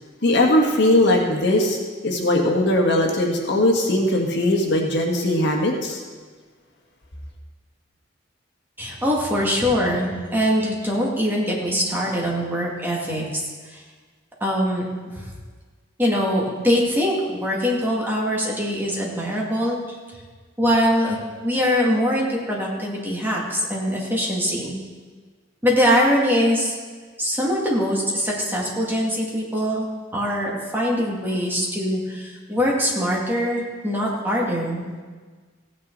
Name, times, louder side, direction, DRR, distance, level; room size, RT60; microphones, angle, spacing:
voice 1, 0.2-1.8 2.0-6.0, left 1 dB, 60° left, 0 dB, 1.8 m, -19 dB
voice 2, 8.8-13.2 13.7-13.8 14.4-14.9 15.1-15.3 16.0-19.8 20.6-21.2 21.4-24.7 25.6-26.8 27.2-29.8 30.1-34.8, equal, 10° right, -4 dB, 2.3 m, -22 dB
16.0 x 9.6 x 4.0 m, 1.5 s
head